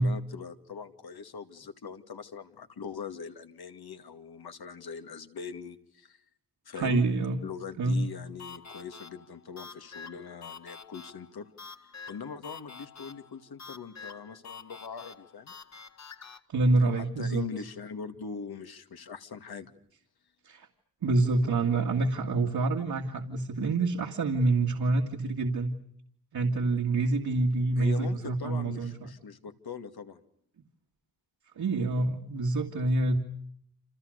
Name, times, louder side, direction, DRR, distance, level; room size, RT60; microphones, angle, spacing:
voice 1, 0.0-6.2 6.7-7.0 7.4-11.5 11.8-15.5 16.8-19.7 27.8-30.2, left 6 dB, 85° left, 7 dB, 2.5 m, -41 dB
voice 2, 6.8-7.4 7.8-8.1 16.5-17.4 20.4-20.7 21.0-25.8 26.3-29.1 31.6-33.2, right 2 dB, 75° right, 2 dB, 2.5 m, -27 dB
sound 1, 8.4-16.4, left 5 dB, 45° left, 1.8 m, -47 dB
29.0 x 28.5 x 6.7 m, 0.69 s
wide cardioid pair, 175°, 36 cm